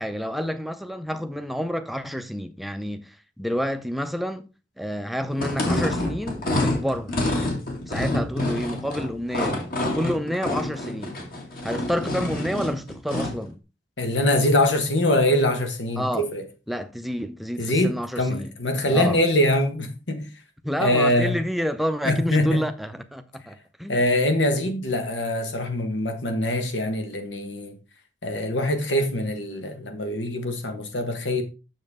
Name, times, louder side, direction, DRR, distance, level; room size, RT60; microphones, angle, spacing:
voice 1, 0.0-4.5 4.8-7.2 7.9-9.7 9.9-11.2 11.6-13.6 16.0-16.3 16.7-18.5 18.9-19.2 20.6-24.0, equal, ahead, 0.6 m, -29 dB
sound 1, 5.3-13.4, left 1 dB, 50° left, 2.0 m, -27 dB
voice 2, 14.0-16.4 17.6-20.3 20.8-21.4 22.0-22.6 23.9-27.8 28.2-31.4, left 1 dB, 90° left, 1.5 m, -23 dB
7.6 x 6.5 x 3.6 m
head